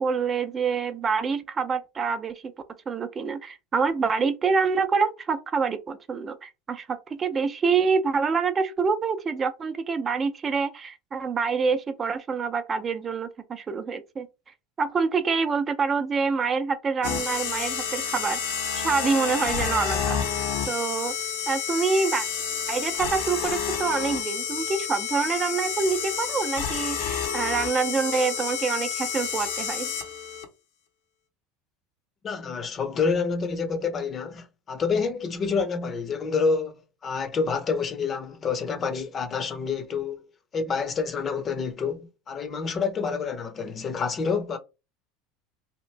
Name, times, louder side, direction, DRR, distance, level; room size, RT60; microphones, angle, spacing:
voice 1, 0.0-2.5 2.9-14.3 14.8-21.1 21.5-22.2 22.7-29.9, right 5 dB, 30° right, 0.5 m, -26 dB
sound 1, 17.0-30.4, left 7 dB, 75° left, 0.8 m, -29 dB
voice 2, 32.2-44.6, left 5 dB, 35° left, 0.7 m, -28 dB
2.9 x 2.6 x 3.2 m
hypercardioid pair, 85°, 0 cm